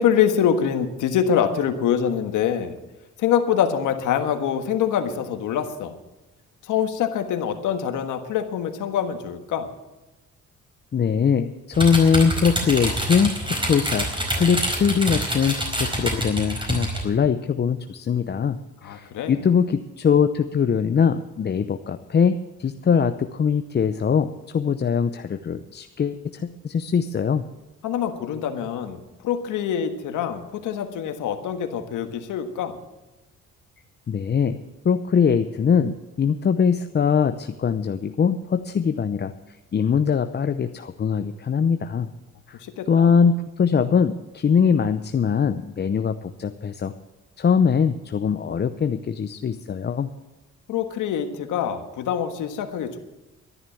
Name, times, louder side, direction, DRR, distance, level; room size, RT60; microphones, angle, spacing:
voice 1, 0.0-2.7 3.2-5.9 6.6-9.7 18.8-19.4 27.8-32.8 42.6-43.1 50.7-53.0, left 8 dB, 85° left, 7 dB, 1.6 m, -25 dB
voice 2, 10.9-27.4 34.1-42.1 42.5-42.6 42.9-46.9 47.4-50.1, left 6 dB, 35° left, 9 dB, 0.7 m, -22 dB
sound 1, 11.7-17.0, right 1 dB, 15° right, 4.7 m, -26 dB
12.5 x 11.0 x 7.1 m, 1.1 s
cardioid pair, 90°, 30 cm